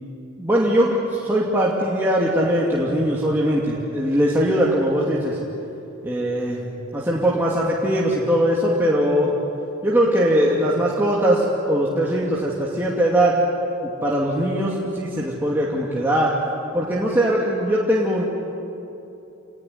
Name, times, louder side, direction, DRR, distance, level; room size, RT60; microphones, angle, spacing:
voice 1, 0.4-5.4 6.0-6.6 6.9-9.3 9.8-13.4 13.8-16.3 16.7-18.2, equal, 10° right, -5 dB, 2.6 m, -21 dB
28.0 x 20.0 x 9.5 m, 2.8 s
head